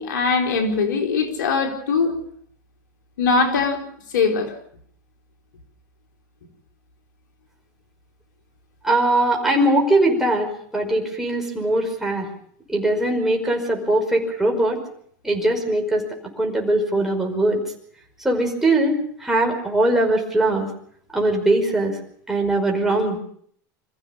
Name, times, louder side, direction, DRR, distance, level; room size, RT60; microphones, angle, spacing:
voice 1, 0.0-2.2 3.2-3.8 4.1-4.5, left 4 dB, 90° left, 5 dB, 4.2 m, -21 dB
voice 2, 8.8-12.3 12.7-14.8 15.2-16.0 16.4-17.6 18.2-20.7 21.1-22.0 22.3-23.2, right 1 dB, 5° right, 0 dB, 5.3 m, -21 dB
25.0 x 15.0 x 7.1 m, 0.62 s
hypercardioid pair, 105°, 10 cm